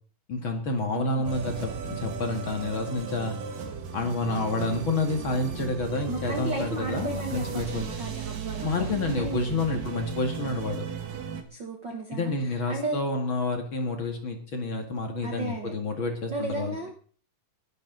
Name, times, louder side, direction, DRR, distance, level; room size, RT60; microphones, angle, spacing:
voice 1, 0.3-3.4 3.9-7.9 8.6-10.9 12.1-16.8, left 2 dB, 40° left, 4 dB, 2.5 m, -29 dB
sound 1, 1.3-11.4, right 6 dB, 85° right, 3.4 m, -36 dB
voice 2, 6.1-8.7 9.2-9.4 11.5-13.0 15.2-15.7 16.3-16.9, right 2 dB, 45° right, 3 dB, 1.6 m, -34 dB
21.0 x 11.0 x 4.0 m, 0.43 s
omnidirectional pair, 3.7 m